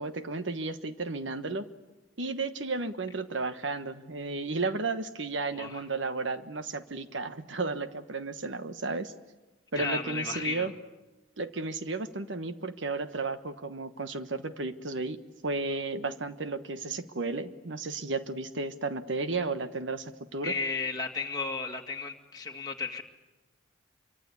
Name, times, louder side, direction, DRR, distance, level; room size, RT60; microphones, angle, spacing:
voice 1, 0.0-1.7 2.2-9.1 9.7-10.7 11.4-20.5, right 3 dB, 70° right, 10 dB, 1.3 m, -33 dB
voice 2, 5.5-5.8 9.8-10.7 20.4-23.0, left 4 dB, 20° left, 1 dB, 2.1 m, -34 dB
26.0 x 24.0 x 8.4 m, 1.1 s
head